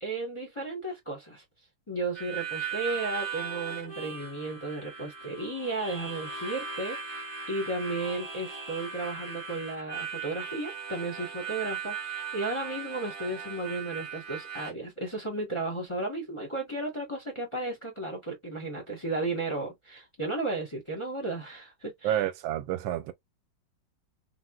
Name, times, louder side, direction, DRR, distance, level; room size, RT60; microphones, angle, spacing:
voice 1, 0.0-1.4 1.9-22.2, right 2 dB, 20° left, 0.9 m, -34 dB
Harmonica, 2.1-14.7, right 6 dB, 35° right, 0.5 m, -38 dB
voice 2, 22.0-23.1, right 11 dB, 90° right, 1.4 m, -29 dB
3.6 x 2.3 x 2.3 m
omnidirectional pair, 2.1 m